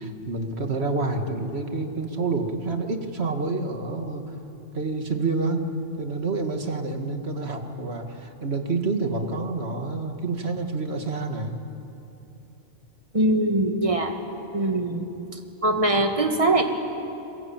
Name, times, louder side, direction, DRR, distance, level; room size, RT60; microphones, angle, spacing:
voice 1, 0.0-4.3 4.7-11.6, right 3 dB, 60° right, 5 dB, 2.2 m, -28 dB
voice 2, 13.1-14.1 14.5-16.6, right 1 dB, 25° right, 4 dB, 2.1 m, -23 dB
28.5 x 22.5 x 8.9 m, 2.9 s
omnidirectional pair, 1.2 m